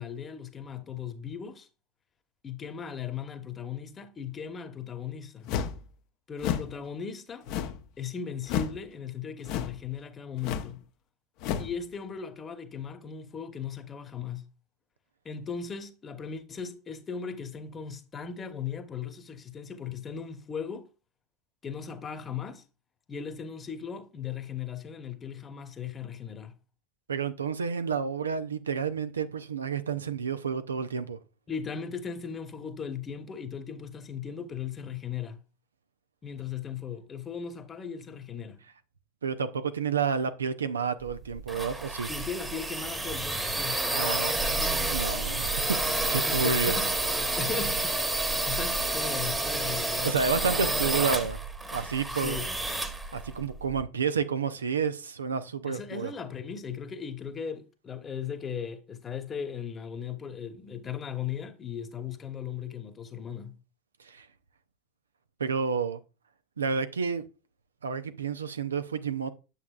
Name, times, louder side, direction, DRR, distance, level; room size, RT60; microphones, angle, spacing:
voice 1, 0.0-1.7 2.4-5.5 6.3-7.5 8.0-10.8 11.6-14.5 15.2-20.9 21.6-22.6 23.1-26.5 31.5-35.4 36.2-38.6 42.1-43.8 46.1-50.2 52.1-52.5 55.6-63.6, left 7 dB, 25° left, 1.1 m, -37 dB
sound 1, 5.5-5.8 6.4-6.7 7.5-7.9 8.4-8.8 9.4-9.8 10.4-10.7 11.4-11.7, left 8 dB, 55° left, 0.7 m, -31 dB
voice 2, 27.1-31.2 39.2-42.1 43.9-44.5 44.9-46.8 50.0-51.4 51.7-52.4 53.1-56.1 64.0-64.3 65.4-66.0 66.6-67.2 67.8-69.3, right 5 dB, 85° right, 0.6 m, -30 dB
sound 2, 41.1-53.8, right 2 dB, 10° right, 1.2 m, -30 dB
8.4 x 7.1 x 2.4 m
figure-of-eight pair, 80°, 0 cm